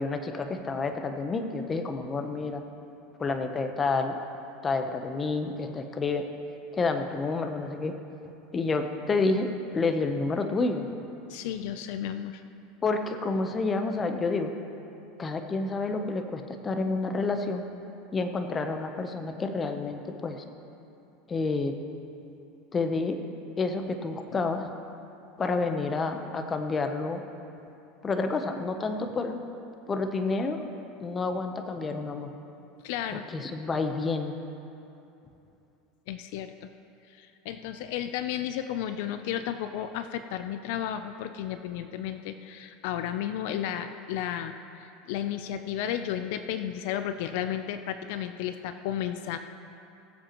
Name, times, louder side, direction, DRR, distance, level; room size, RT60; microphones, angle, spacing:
voice 1, 0.0-2.6 3.2-4.2 4.6-6.3 6.7-7.9 8.5-10.9 12.8-14.5 15.2-17.6 18.1-20.4 21.3-21.7 22.7-23.2 23.6-24.6 25.4-27.2 28.0-29.4 29.9-30.7 31.0-32.3 33.3-34.3, left 3 dB, 20° left, 6 dB, 0.8 m, -29 dB
voice 2, 11.3-12.4 32.8-33.3 36.1-36.7 37.1-49.4, left 10 dB, 70° left, 9 dB, 0.5 m, -33 dB
21.0 x 7.7 x 3.0 m, 2.8 s
supercardioid pair, 140°, 0 cm